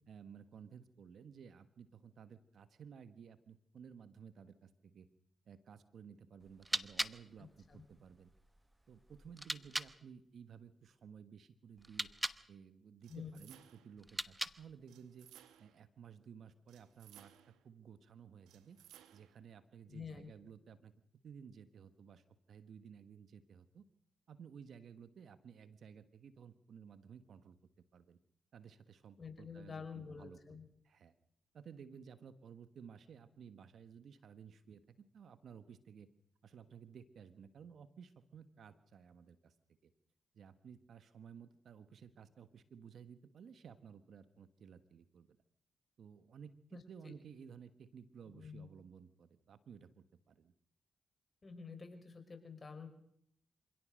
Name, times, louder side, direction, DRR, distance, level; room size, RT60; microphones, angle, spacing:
voice 1, 0.1-5.1 5.5-8.3 8.9-12.1 12.5-15.3 15.6-18.8 19.1-20.9 21.2-23.8 24.3-27.6 27.9-28.2 28.5-30.6 30.8-31.1 31.5-36.1 36.4-39.5 39.8-39.9 40.3-45.4 46.0-50.5, right 7 dB, 70° right, 12 dB, 1.4 m, -56 dB
sound 1, 6.4-10.0 11.8-12.5 14.0-14.8, right 1 dB, 15° right, 1.1 m, -42 dB
voice 2, 7.4-7.8 13.1-13.4 19.9-20.3 29.2-30.7 46.7-47.1 48.3-48.7 51.4-52.9, left 5 dB, 45° left, 6 dB, 5.7 m, -49 dB
sound 2, 13.0-14.0 14.9-15.9 16.7-17.7 18.5-19.4, right 12 dB, 90° right, 1.2 m, -61 dB
26.5 x 17.0 x 6.5 m, 0.71 s
supercardioid pair, 45°, 0 cm